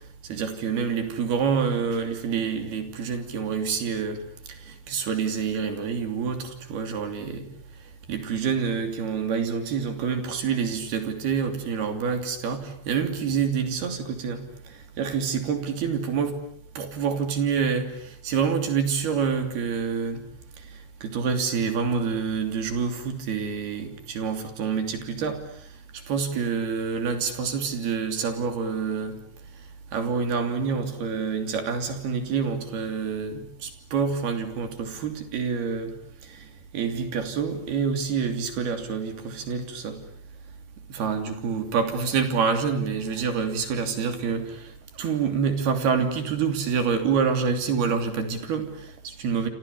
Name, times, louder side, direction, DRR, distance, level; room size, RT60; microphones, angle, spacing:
voice 1, 0.3-4.2 4.5-7.5 8.1-14.4 15.0-16.4 16.8-20.2 21.0-25.4 26.1-29.2 29.9-35.9 36.2-36.4 36.7-40.0 40.9-44.7 45.0-49.5, right 6 dB, 65° right, 7 dB, 4.8 m, -27 dB
28.5 x 27.5 x 7.0 m, 0.63 s
omnidirectional pair, 5.0 m